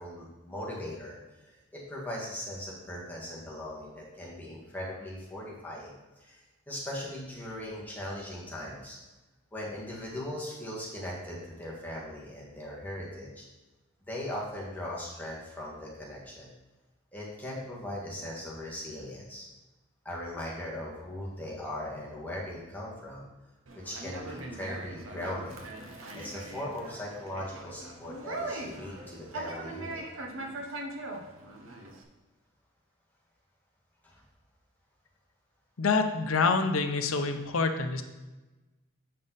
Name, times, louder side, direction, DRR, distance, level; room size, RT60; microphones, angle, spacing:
voice 1, 0.0-5.9 6.2-9.0 9.5-13.5 14.1-16.5 17.1-19.5 20.1-23.3 23.8-25.6 26.1-30.0 34.0-34.2, left 1 dB, 10° left, -5 dB, 1.8 m, -39 dB
Conversation, 23.7-32.0, right 2 dB, 75° right, 1.0 m, -41 dB
voice 2, 35.8-38.0, left 4 dB, 80° left, 7 dB, 0.7 m, -26 dB
7.6 x 5.5 x 4.1 m, 1.1 s
head